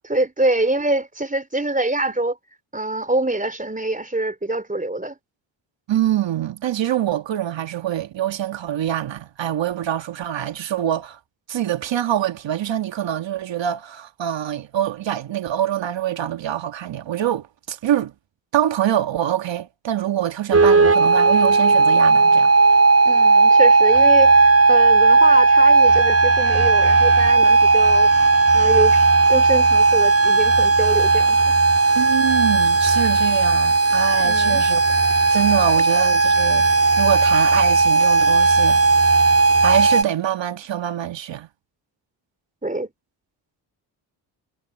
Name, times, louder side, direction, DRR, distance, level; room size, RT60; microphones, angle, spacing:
voice 1, 0.0-2.4 2.7-5.2 23.0-28.1 28.5-31.5 34.2-34.6 42.6-42.9, right 2 dB, 15° right, 4.6 m, -25 dB
voice 2, 5.9-11.2 11.5-18.1 18.5-22.5 31.9-34.8 35.3-36.7 37.0-41.5, right 11 dB, 70° right, 1.8 m, -25 dB
sound 1, 20.5-40.0, right 4 dB, 30° right, 3.6 m, -15 dB
cardioid pair, 60°, 46 cm